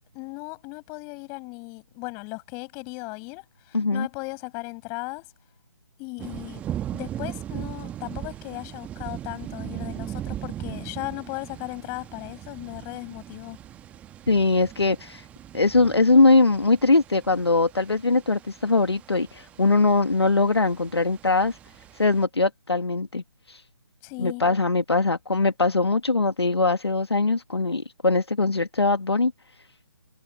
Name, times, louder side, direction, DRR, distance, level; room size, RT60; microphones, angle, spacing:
voice 1, 0.1-5.3 6.0-6.6 6.9-13.6 24.0-24.4, left 30 dB, 20° left, 7.1 m, -37 dB
voice 2, 3.7-4.1 14.3-15.2 15.5-21.6 22.0-23.6 24.2-29.3, left 3 dB, 75° left, 1.5 m, -21 dB
sound 1, 6.2-22.2, right 11 dB, 10° right, 1.4 m, -39 dB
figure-of-eight pair, 145°, 14 cm